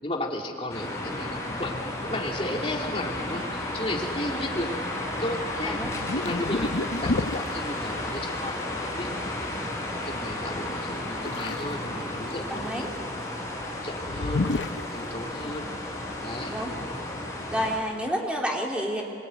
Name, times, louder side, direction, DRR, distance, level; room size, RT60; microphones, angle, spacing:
voice 1, 0.0-9.5 9.9-12.9 13.8-14.5 14.9-15.7 16.2-16.5, left 1 dB, 30° left, 0 dB, 3.0 m, -34 dB
sound 1, 0.7-17.8, left 1 dB, 15° left, 5.8 m, -33 dB
sound 2, 5.3-5.5 5.8-7.5 11.3-11.7 12.1-12.7 14.1-14.9, left 2 dB, 80° left, 0.7 m, -30 dB
voice 2, 12.5-12.9 15.3-15.5 16.5-16.7 17.5-19.0, equal, 5° right, -1 dB, 3.3 m, -30 dB
25.0 x 24.5 x 9.3 m, 2.4 s
head